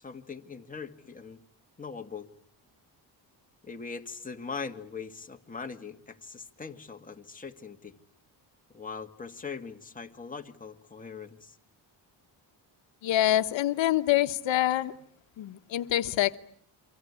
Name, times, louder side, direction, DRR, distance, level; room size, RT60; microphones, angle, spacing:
voice 1, 0.0-1.4 1.8-2.3 3.6-7.9 8.7-11.6, left 5 dB, 20° left, 4 dB, 2.2 m, -41 dB
voice 2, 13.0-14.9 15.4-16.4, left 13 dB, 80° left, 10 dB, 1.1 m, -26 dB
28.5 x 24.5 x 8.5 m, 0.63 s
cardioid pair, 105°, 45 cm